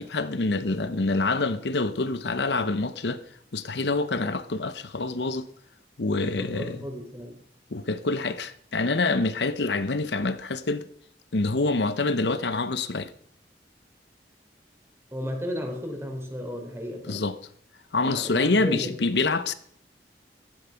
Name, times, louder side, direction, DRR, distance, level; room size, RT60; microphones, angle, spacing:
voice 1, 0.0-3.2 3.5-5.5 6.0-6.8 7.7-10.9 11.3-13.1 17.1-17.4 17.9-19.5, left 3 dB, 70° left, 0.8 m, -26 dB
voice 2, 6.2-7.4 15.1-17.2 18.0-18.9, equal, 15° right, 3.6 m, -34 dB
15.0 x 12.5 x 5.8 m
head